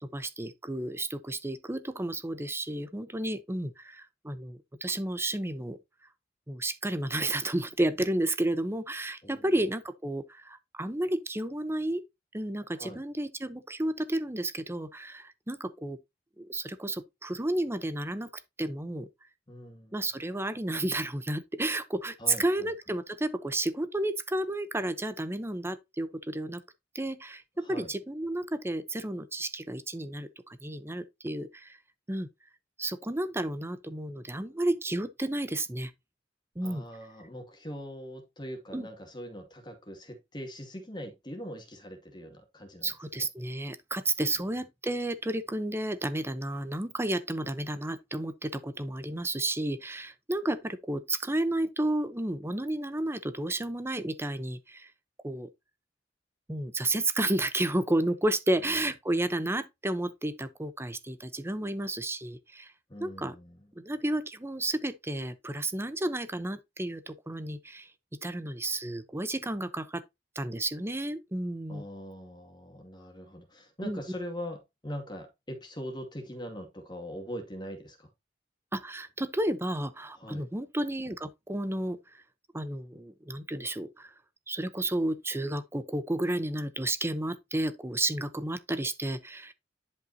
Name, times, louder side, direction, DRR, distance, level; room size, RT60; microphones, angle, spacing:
voice 1, 0.0-5.8 6.5-12.0 12.3-16.0 16.4-18.3 18.6-19.1 19.9-26.6 26.9-27.4 27.7-30.3 30.6-31.8 32.1-32.3 32.8-35.9 36.6-36.8 38.7-38.9 42.8-54.9 55.2-55.5 56.5-62.7 63.0-63.4 63.8-67.9 68.2-70.0 70.4-71.8 73.8-74.0 78.7-82.0 82.5-84.1 84.5-89.5, right 1 dB, 15° right, 0.8 m, -32 dB
voice 2, 19.5-20.0 22.2-22.7 27.6-27.9 36.6-43.3 62.9-63.7 71.7-78.1 80.2-80.5, equal, 25° left, 2.2 m, -42 dB
10.5 x 5.4 x 2.8 m
head